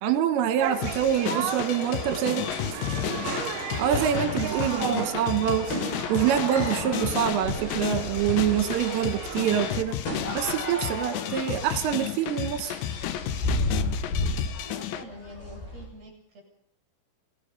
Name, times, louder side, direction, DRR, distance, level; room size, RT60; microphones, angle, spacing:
voice 1, 0.0-2.4 3.8-5.7 6.1-10.0 10.4-12.8, right 10 dB, 80° right, 9 dB, 4.1 m, -25 dB
sound 1, 0.6-9.8, right 6 dB, 50° right, 3.3 m, -35 dB
sound 2, 0.8-15.0, left 12 dB, 75° left, 2.8 m, -33 dB
sound 3, 2.6-15.8, left 1 dB, 50° left, 7.8 m, -34 dB
voice 2, 14.4-16.4, right 1 dB, 30° right, -1 dB, 9.1 m, -46 dB
27.5 x 18.5 x 5.5 m, 0.70 s
omnidirectional pair, 6.0 m